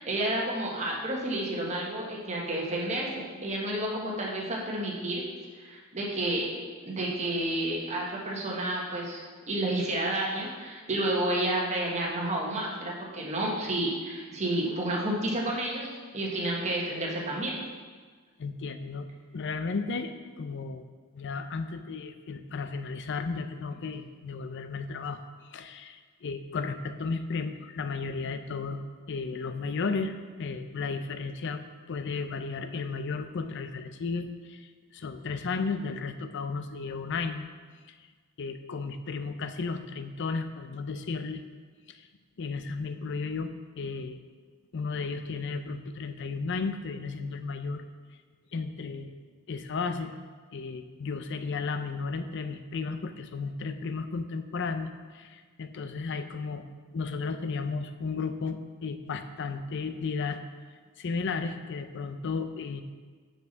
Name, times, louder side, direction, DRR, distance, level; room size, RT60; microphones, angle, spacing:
voice 1, 0.0-5.2 5.6-6.5 6.8-9.2 9.5-17.6, right 1 dB, 35° right, -3 dB, 1.4 m, -30 dB
voice 2, 18.4-20.9 21.1-31.6 31.9-37.5 37.9-38.1 38.4-41.4 41.9-42.1 42.4-44.2 44.7-47.8 48.5-49.1 49.5-50.1 50.5-56.7 56.9-60.4 61.0-62.8, left 4 dB, 55° left, 9 dB, 0.5 m, -34 dB
6.0 x 5.6 x 5.6 m, 1.5 s
head